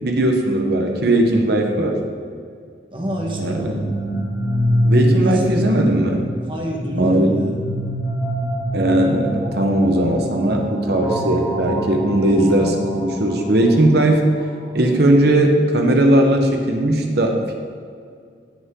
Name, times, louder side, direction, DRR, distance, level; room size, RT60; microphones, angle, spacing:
voice 1, 0.0-2.0 3.4-3.6 4.8-6.2 7.0-7.3 8.7-14.2 14.7-17.5, right 1 dB, 65° right, 2 dB, 1.0 m, -18 dB
sound 1, 2.9-14.8, equal, 70° left, 2.1 m, -25 dB
voice 2, 2.9-3.9 5.2-6.1 6.4-7.6 12.4-12.7, equal, 30° right, -1 dB, 1.5 m, -26 dB
16.0 x 5.5 x 3.8 m, 2.2 s
head